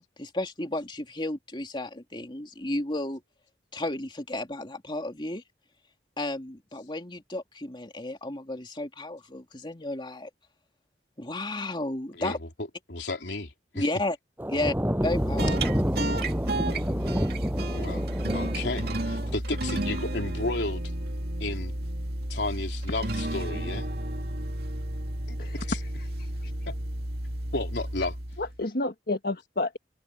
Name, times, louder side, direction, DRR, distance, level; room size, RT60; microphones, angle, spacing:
voice 1, 0.0-3.2 3.7-5.4 6.2-10.3 11.2-12.4 13.7-14.2 14.5-14.7 15.0-15.8, left 1 dB, 25° left, 3.0 m, -33 dB
voice 2, 12.9-13.8 14.5-14.6 17.7-18.1 18.3-20.8 21.4-21.7 22.3-23.9 25.3-25.4 25.7-25.8 26.7-26.8 27.5-28.2, left 2 dB, 75° left, 3.5 m, -33 dB
sound 1, 14.4-19.4, equal, 10° right, 7.4 m, -29 dB
sound 2, 15.0-28.6, right 1 dB, 60° right, 2.5 m, -32 dB
voice 3, 25.4-26.5 28.4-29.8, left 2 dB, 55° left, 1.7 m, -32 dB
open air
head